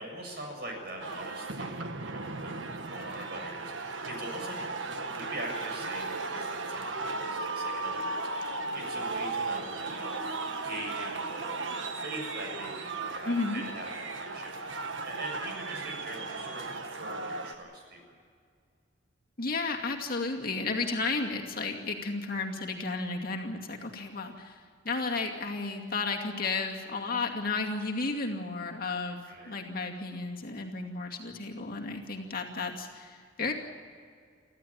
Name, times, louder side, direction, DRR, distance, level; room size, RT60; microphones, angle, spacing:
voice 1, 0.0-4.6 4.8-10.2 10.6-13.9 14.2-18.0 29.2-29.6, right 1 dB, 55° right, 1 dB, 7.2 m, -42 dB
sound 1, 1.0-17.5, right 3 dB, 80° right, 1.5 m, -36 dB
voice 2, 13.2-13.6 19.4-29.2 29.5-33.5, left 3 dB, 50° left, 1 dB, 2.4 m, -33 dB
25.0 x 15.0 x 8.9 m, 2.1 s
head